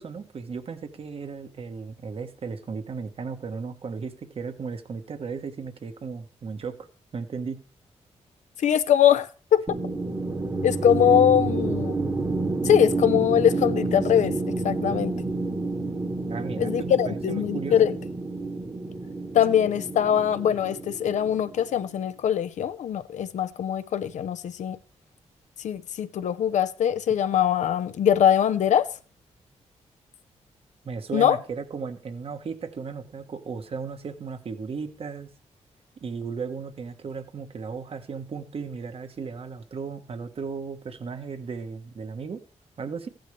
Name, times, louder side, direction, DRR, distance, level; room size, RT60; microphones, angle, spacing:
voice 1, 0.0-6.9 7.1-7.6 16.3-17.9 30.8-35.3 36.0-42.4 42.8-43.1, right 5 dB, 50° right, 1.2 m, -35 dB
voice 2, 8.6-9.7 10.6-12.0 12.6-14.3 14.6-15.1 16.6-18.0 19.3-24.8 25.6-28.9 31.1-31.4, left 9 dB, 85° left, 0.7 m, -22 dB
sound 1, 9.7-21.8, right 3 dB, 30° right, 1.2 m, -29 dB
14.5 x 10.5 x 3.3 m
cardioid pair, 105°, 12 cm